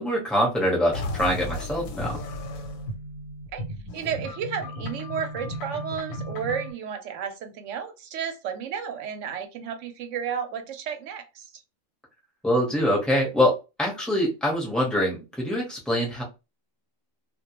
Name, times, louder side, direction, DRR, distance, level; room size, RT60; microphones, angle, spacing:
voice 1, 0.0-2.2 12.4-16.2, equal, ahead, 0.6 m, -24 dB
sound 1, 0.9-6.7, left 1 dB, 90° left, 1.0 m, -34 dB
voice 2, 3.9-11.5, right 7 dB, 70° right, 0.8 m, -32 dB
2.2 x 2.2 x 2.9 m
omnidirectional pair, 1.4 m